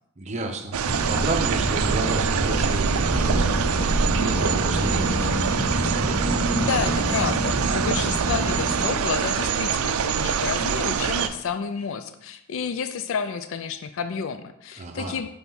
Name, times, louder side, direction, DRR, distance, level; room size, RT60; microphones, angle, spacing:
voice 1, 0.2-5.2 14.8-15.2, right 2 dB, 30° right, 3 dB, 0.7 m, -32 dB
sound 1, 0.7-11.3, right 6 dB, 75° right, 0.4 m, -25 dB
sound 2, 0.8-8.8, right 1 dB, 85° left, 1.7 m, -27 dB
voice 2, 6.5-15.3, left 6 dB, 60° left, 10 dB, 0.4 m, -30 dB
6.0 x 3.4 x 5.4 m, 0.78 s
head